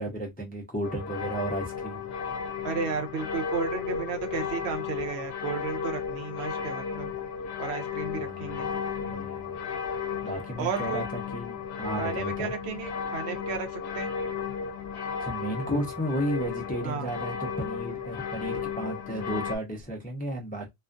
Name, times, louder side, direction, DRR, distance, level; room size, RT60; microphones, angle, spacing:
voice 1, 0.0-2.0 8.1-9.7 10.2-12.5 15.2-20.7, right 1 dB, 15° left, 0.3 m, -34 dB
sound 1, 0.8-19.6, left 6 dB, 75° left, 0.8 m, -34 dB
voice 2, 2.6-7.1 7.6-8.7 10.6-11.0 12.0-14.1 16.8-17.1, right 6 dB, 75° right, 0.9 m, -33 dB
2.4 x 2.2 x 2.4 m
omnidirectional pair, 1.1 m